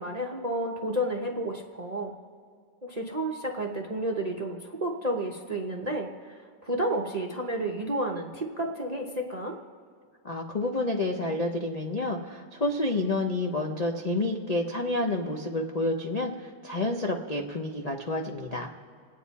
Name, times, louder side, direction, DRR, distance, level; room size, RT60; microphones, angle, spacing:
voice 1, 0.0-2.2 2.8-9.6, right 1 dB, 35° right, 1 dB, 0.6 m, -31 dB
voice 2, 10.2-18.8, left 2 dB, 60° left, 1 dB, 0.4 m, -29 dB
28.5 x 9.6 x 4.1 m, 2.1 s
omnidirectional pair, 2.1 m